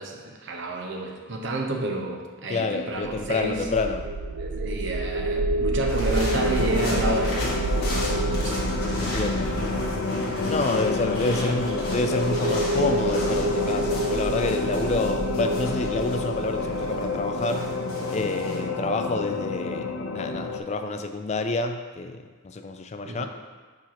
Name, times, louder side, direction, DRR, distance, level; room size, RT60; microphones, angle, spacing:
voice 1, 0.0-3.6 4.4-7.4 7.8-8.6 10.9-11.0 14.7-14.9 23.0-23.3, right 2 dB, 60° right, 1 dB, 0.8 m, -30 dB
voice 2, 2.5-4.1 9.0-9.5 10.4-17.7 18.1-22.2 22.5-23.3, left 3 dB, 30° left, 7 dB, 0.3 m, -28 dB
sound 1, 3.0-18.1, right 2 dB, 75° right, 0.5 m, -29 dB
sound 2, 5.9-18.6, left 1 dB, 50° left, 1.9 m, -36 dB
sound 3, 6.3-20.6, left 3 dB, 70° left, 0.6 m, -30 dB
4.9 x 4.3 x 5.8 m, 1.5 s
head